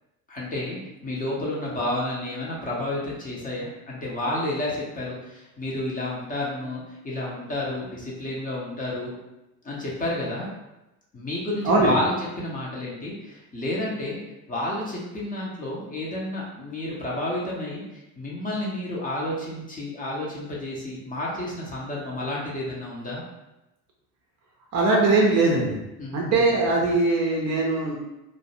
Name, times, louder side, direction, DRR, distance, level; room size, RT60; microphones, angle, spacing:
voice 1, 0.3-9.1 9.6-10.5 11.1-14.2 14.5-23.2 26.0-26.6, left 1 dB, 20° left, -5 dB, 0.5 m, -30 dB
voice 2, 24.7-25.8 26.1-28.0, right 3 dB, 35° right, -1 dB, 0.5 m, -21 dB
2.4 x 2.0 x 2.7 m, 0.96 s
figure-of-eight pair, 55°, 48 cm